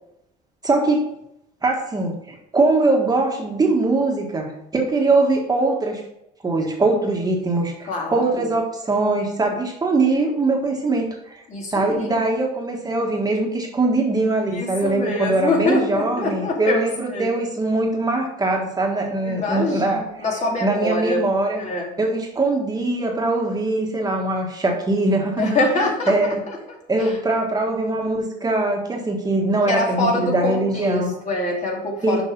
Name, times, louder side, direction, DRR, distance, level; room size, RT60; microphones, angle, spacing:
voice 1, 0.6-1.1 1.6-6.0 6.4-11.4 11.7-20.0 20.6-21.6 22.0-25.6 26.1-26.4 26.9-31.1 32.0-32.2, right 2 dB, 20° right, 0 dB, 1.6 m, -22 dB
voice 2, 7.9-8.5 11.5-12.2 14.5-16.8 17.1-17.3 19.2-21.2 21.6-21.9 25.4-27.2 29.7-32.2, left 2 dB, 45° left, -1 dB, 2.4 m, -25 dB
6.9 x 5.3 x 5.4 m, 0.80 s
cardioid pair, 115°, 17 cm